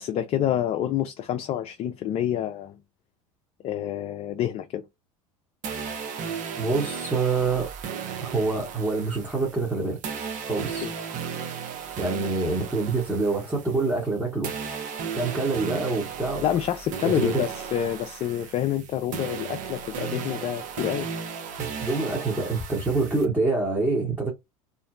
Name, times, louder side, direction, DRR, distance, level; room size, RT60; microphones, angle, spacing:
voice 1, 0.0-2.8 3.6-4.8 10.8-10.9 16.4-21.1, left 11 dB, 35° left, 0.4 m, -27 dB
sound 1, 5.6-14.1 14.4-23.2, right 6 dB, 45° right, 0.7 m, -35 dB
voice 2, 6.6-7.7 8.2-10.0 10.4-10.9 12.0-14.5 15.1-16.4 17.0-17.4 21.6-24.3, right 3 dB, 10° right, 1.0 m, -26 dB
2.5 x 2.0 x 2.4 m
hypercardioid pair, 75°, 18 cm